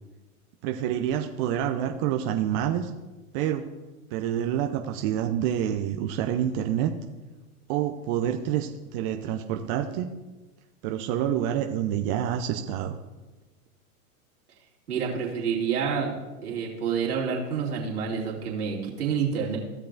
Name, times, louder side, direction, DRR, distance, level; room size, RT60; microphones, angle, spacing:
voice 1, 0.6-2.9 3.3-3.7 4.1-6.9 7.7-10.1 10.8-13.0, right 10 dB, 40° right, 4 dB, 0.6 m, -27 dB
voice 2, 14.9-16.1 16.4-19.6, right 6 dB, 75° right, -3 dB, 2.6 m, -28 dB
15.5 x 6.6 x 2.6 m, 1.2 s
hypercardioid pair, 110°, 45 cm